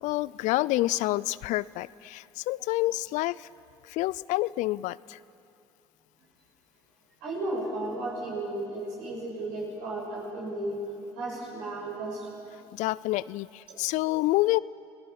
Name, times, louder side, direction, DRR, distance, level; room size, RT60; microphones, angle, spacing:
voice 1, 0.0-3.5 3.8-5.2 12.7-14.6, left 18 dB, 65° left, 21 dB, 0.4 m, -28 dB
voice 2, 7.2-10.8 11.2-12.4 13.7-13.8, right 2 dB, 75° right, -4 dB, 7.6 m, -34 dB
29.0 x 18.5 x 6.0 m, 2.6 s
hypercardioid pair, 60°, 14 cm